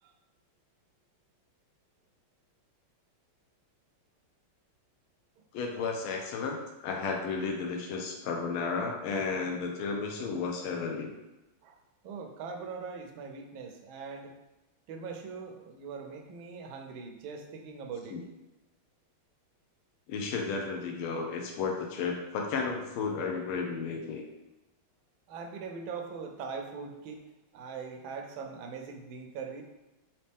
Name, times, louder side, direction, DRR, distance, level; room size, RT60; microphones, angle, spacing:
voice 1, 5.5-11.1 18.1-18.2 20.1-24.2, left 4 dB, 80° left, 2 dB, 1.5 m, -33 dB
voice 2, 12.0-14.3 14.9-18.2 25.3-27.3 27.5-29.6, right 5 dB, 75° right, 4 dB, 1.3 m, -41 dB
4.2 x 2.8 x 3.4 m, 1.0 s
omnidirectional pair, 2.3 m